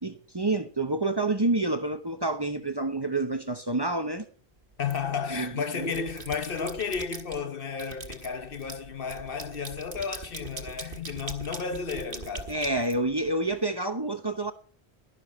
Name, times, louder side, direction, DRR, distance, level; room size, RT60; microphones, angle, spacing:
voice 1, 0.0-4.3 5.3-5.5 5.8-5.9 12.5-14.5, right 2 dB, 25° right, 0.9 m, -28 dB
voice 2, 4.8-12.5, left 5 dB, 60° left, 1.1 m, -33 dB
sound 1, 4.9-5.4 5.8-7.4 7.8-13.6, right 3 dB, 55° right, 1.7 m, -42 dB
12.0 x 12.0 x 4.3 m
omnidirectional pair, 1.1 m